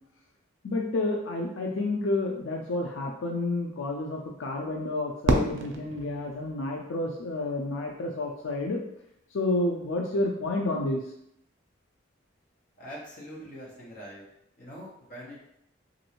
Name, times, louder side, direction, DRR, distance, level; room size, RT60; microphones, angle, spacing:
voice 1, 0.6-8.8 9.3-11.0, left 2 dB, 85° left, 0 dB, 0.4 m, -30 dB
Fireworks, 5.2-7.4, right 2 dB, 80° right, 0.4 m, -30 dB
voice 2, 12.8-14.2 14.6-15.5, equal, 45° left, -4 dB, 1.0 m, -43 dB
3.0 x 2.6 x 2.9 m, 0.76 s
head